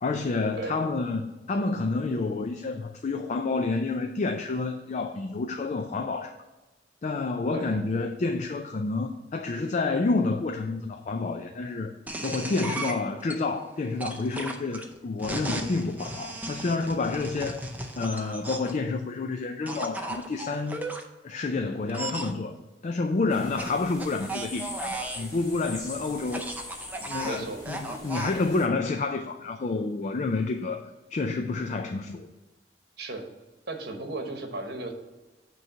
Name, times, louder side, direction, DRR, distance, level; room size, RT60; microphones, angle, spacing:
voice 1, 0.0-6.4 7.0-11.9 12.2-17.6 18.0-20.8 21.2-22.6 22.8-26.5 27.0-30.8 31.1-32.3, left 3 dB, 40° left, 5 dB, 0.4 m, -29 dB
sound 1, 12.1-13.3 14.0-18.8 19.7-21.0 21.9-22.3 23.6-25.3 26.2-28.4, right 2 dB, 10° right, 0.6 m, -35 dB
sound 2, 23.3-28.7, left 2 dB, 20° left, 1.7 m, -43 dB
voice 2, 27.2-28.0 28.3-28.4 33.0-33.3 33.7-34.9, right 2 dB, 60° right, 4 dB, 1.2 m, -36 dB
8.9 x 3.2 x 6.6 m, 1.1 s
head